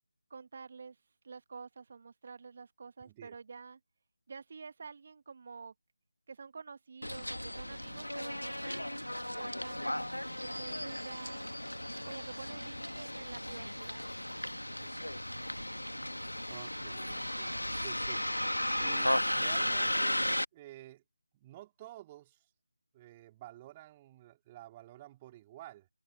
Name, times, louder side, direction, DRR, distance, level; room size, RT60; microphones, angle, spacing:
voice 1, 0.3-3.8 4.3-5.7 6.3-9.1 9.3-9.9 10.4-11.5 12.0-14.0, right 5 dB, 40° right, 1.7 m, -49 dB
voice 2, 3.0-3.4 10.8-10.9 14.8-15.2 16.5-21.0 21.3-22.5 22.9-25.9, right 15 dB, 15° right, 2.8 m, -52 dB
Bus, 7.0-20.4, left 1 dB, 90° left, 1.9 m, -35 dB
figure-of-eight pair, 160°, 0 cm